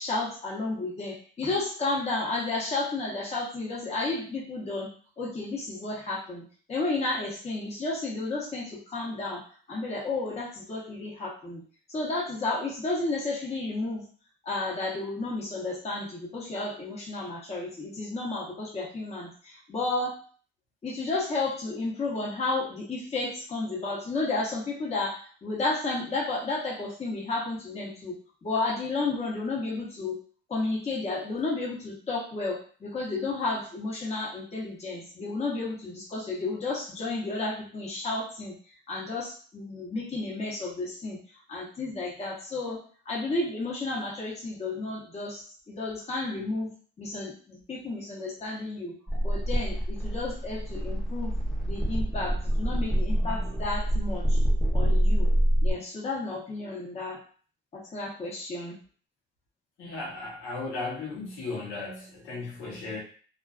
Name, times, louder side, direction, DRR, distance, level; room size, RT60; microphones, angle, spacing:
voice 1, 0.0-4.9 5.2-6.4 6.7-11.6 11.9-14.0 14.4-20.2 20.8-30.2 30.5-38.6 38.9-46.7 47.0-48.9 49.2-51.3 51.7-54.4 54.7-55.3 55.6-57.2 57.7-58.8, left 3 dB, 30° left, -4 dB, 0.8 m, -32 dB
sound 1, 49.1-55.7, equal, ahead, 0.8 m, -26 dB
voice 2, 59.8-63.0, left 3 dB, 75° left, -2 dB, 0.8 m, -36 dB
2.4 x 2.3 x 2.3 m, 0.43 s
cardioid pair, 115°, 20 cm